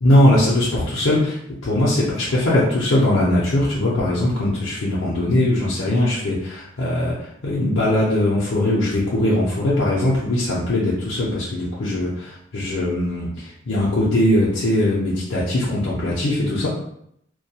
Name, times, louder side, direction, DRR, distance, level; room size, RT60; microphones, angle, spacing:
voice 1, 0.0-1.4 1.6-16.7, left 1 dB, 75° left, -7 dB, 0.6 m, -20 dB
2.2 x 2.2 x 2.7 m, 0.71 s
head